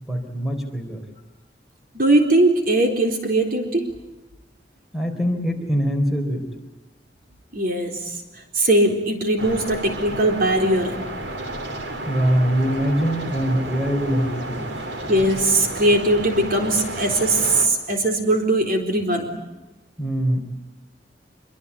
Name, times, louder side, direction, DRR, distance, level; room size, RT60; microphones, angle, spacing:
voice 1, 0.0-1.0 4.9-6.5 12.1-14.9 20.0-20.4, equal, ahead, 4 dB, 4.1 m, -23 dB
voice 2, 1.9-3.8 7.5-8.0 8.6-10.9 15.1-19.3, right 1 dB, 55° right, 4 dB, 4.1 m, -20 dB
sound 1, 9.4-17.7, right 1 dB, 90° right, 3.3 m, -32 dB
26.0 x 24.0 x 8.6 m, 1.0 s
head